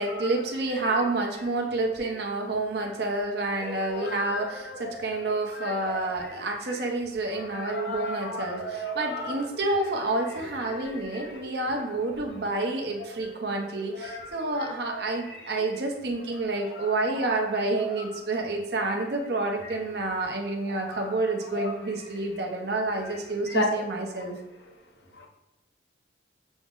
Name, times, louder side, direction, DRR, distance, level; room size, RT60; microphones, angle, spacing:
voice 1, 0.0-24.4, right 2 dB, 55° right, 1 dB, 0.7 m, -29 dB
voice 2, 3.4-5.0 5.5-6.3 7.3-9.4 10.7-11.5 14.0-14.3 14.6-15.0 15.3-15.4 16.8-16.9 17.6-18.0 20.7-21.0 21.5-21.9 23.5-23.6 25.1-25.3, left 1 dB, 60° left, 1 dB, 0.7 m, -35 dB
6.1 x 2.0 x 3.6 m, 1.1 s
head